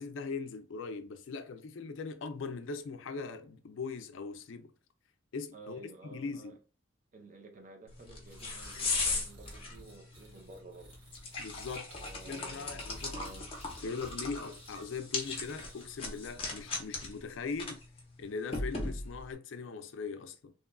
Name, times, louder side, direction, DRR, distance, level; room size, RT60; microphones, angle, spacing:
voice 1, 0.0-4.7 5.3-6.6 11.4-11.9 12.3-13.2 13.8-17.8 18.2-20.5, left 4 dB, 70° left, 0.4 m, -40 dB
voice 2, 5.5-6.6 7.1-10.9 11.9-13.5, right 3 dB, 40° right, 0.6 m, -52 dB
sound 1, 7.9-19.3, left 3 dB, 30° left, 0.7 m, -39 dB
sound 2, 8.3-16.8, right 1 dB, 80° right, 1.2 m, -56 dB
3.0 x 2.3 x 2.2 m
head